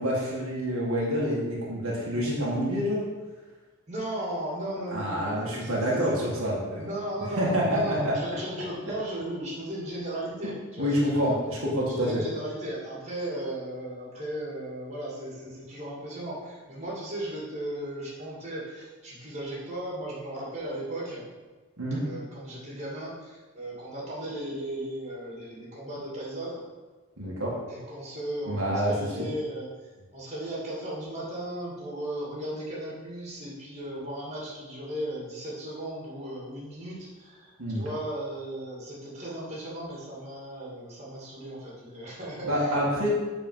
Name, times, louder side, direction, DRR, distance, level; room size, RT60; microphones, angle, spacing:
voice 1, 0.0-3.0 4.9-6.8 7.4-8.1 10.8-12.2 21.8-22.0 27.2-27.5 28.5-29.1 37.6-37.8 42.4-43.1, equal, 70° right, -5 dB, 1.8 m, -27 dB
voice 2, 3.9-6.3 6.8-11.4 12.0-21.3 22.0-26.6 27.7-29.7 30.1-43.1, right 1 dB, 30° right, -6 dB, 2.2 m, -36 dB
7.5 x 4.4 x 5.6 m, 1.3 s
head